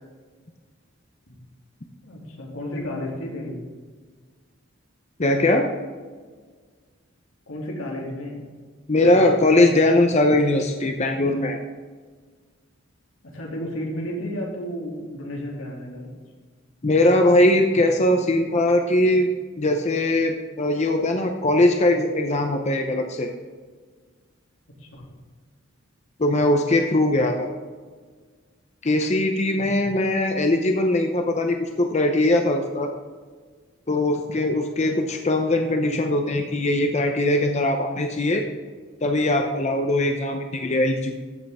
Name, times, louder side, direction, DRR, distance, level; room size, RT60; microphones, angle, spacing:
voice 1, 2.0-3.6 7.5-8.4 9.0-9.3 13.2-16.1 24.8-25.1 29.5-29.9, equal, 90° left, -2 dB, 2.8 m, -33 dB
voice 2, 5.2-5.6 8.9-11.6 16.8-19.3 19.6-23.3 26.2-27.5 28.8-32.9 33.9-38.4 39.0-41.2, left 1 dB, 35° left, 4 dB, 0.7 m, -20 dB
14.0 x 6.5 x 3.6 m, 1.5 s
head